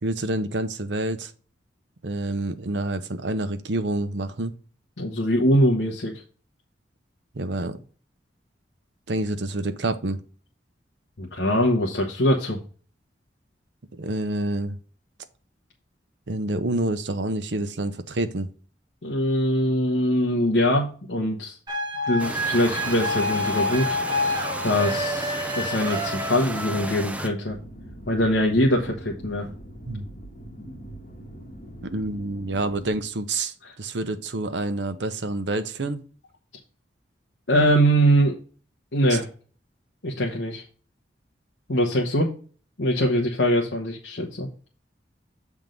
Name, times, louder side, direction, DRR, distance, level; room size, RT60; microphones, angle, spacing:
voice 1, 0.0-1.3 2.0-4.5 7.3-7.8 9.1-10.2 13.9-14.8 16.3-18.5 29.9-30.0 31.8-36.0 39.1-39.2, right 2 dB, 70° right, 10 dB, 0.8 m, -28 dB
voice 2, 5.0-6.1 11.2-12.6 19.0-21.6 22.1-24.0 24.6-27.6 28.1-29.5 33.6-33.7 37.5-38.4 38.9-39.3 40.0-40.6 41.7-42.3 42.8-44.5, equal, 75° left, 0 dB, 1.1 m, -22 dB
sound 1, 21.7-27.2, left 1 dB, 25° right, 1.4 m, -28 dB
sound 2, 22.2-27.3, right 1 dB, 10° right, 0.6 m, -34 dB
sound 3, 27.5-33.0, right 1 dB, 45° left, 1.7 m, -42 dB
7.6 x 3.6 x 5.2 m, 0.41 s
head